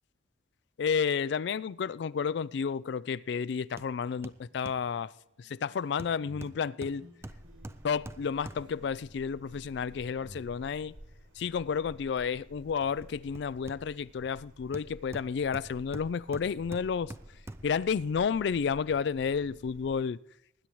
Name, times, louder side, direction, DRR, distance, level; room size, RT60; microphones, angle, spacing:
voice 1, 0.8-5.1 5.4-7.1 7.8-11.0 11.4-17.1 17.6-20.2, left 6 dB, 60° left, 0.3 m, -31 dB
Hammer, 3.8-4.0 4.2-4.9 6.0-8.9 12.7-14.2 14.7-17.8 18.3-18.4, right 1 dB, 15° right, 0.3 m, -46 dB
sound 1, 4.0-10.4, right 1 dB, 75° right, 1.9 m, -56 dB
sound 2, 7.2-20.0, equal, 90° right, 4.6 m, -53 dB
20.0 x 10.0 x 3.1 m
head